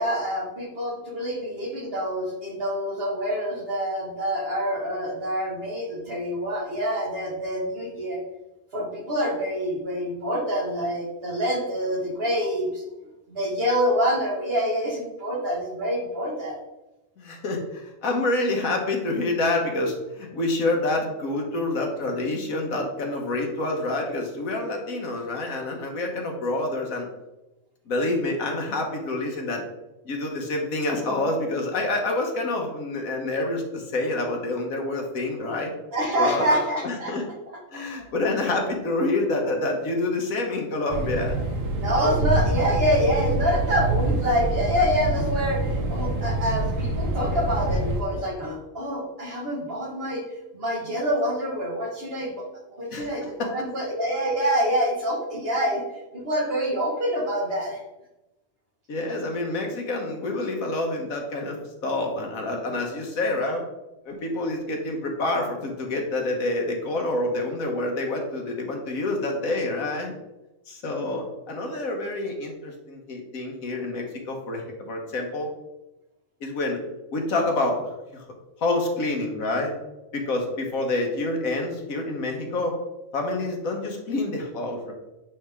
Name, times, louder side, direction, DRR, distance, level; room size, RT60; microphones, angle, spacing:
voice 1, 0.0-8.2 8.7-12.9 13.3-16.6 35.9-37.1 37.7-37.8 41.7-50.2 50.5-52.4 52.7-55.8 56.1-57.8, equal, 45° right, -3 dB, 1.8 m, -26 dB
voice 2, 17.2-27.1 27.9-29.6 30.1-35.7 36.2-37.2 37.7-41.4 52.9-53.5 58.9-63.6 64.1-70.1 70.7-75.5 76.4-76.8 77.1-78.2 78.6-79.7 80.1-82.8 83.1-84.9, left 2 dB, 85° left, 2 dB, 1.7 m, -27 dB
sound 1, 40.9-48.0, right 2 dB, 70° right, 1.3 m, -26 dB
10.0 x 3.6 x 3.5 m, 0.98 s
omnidirectional pair, 1.4 m